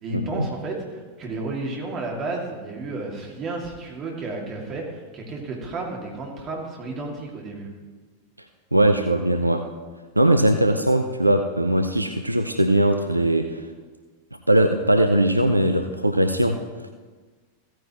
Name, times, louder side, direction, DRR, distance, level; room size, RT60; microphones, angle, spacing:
voice 1, 0.0-7.7, right 2 dB, 30° right, 0 dB, 2.3 m, -32 dB
voice 2, 8.7-9.7 10.2-13.7 14.5-16.9, right 1 dB, 85° right, 6 dB, 0.5 m, -20 dB
15.5 x 9.3 x 3.0 m, 1.4 s
figure-of-eight pair, 90°, 0 cm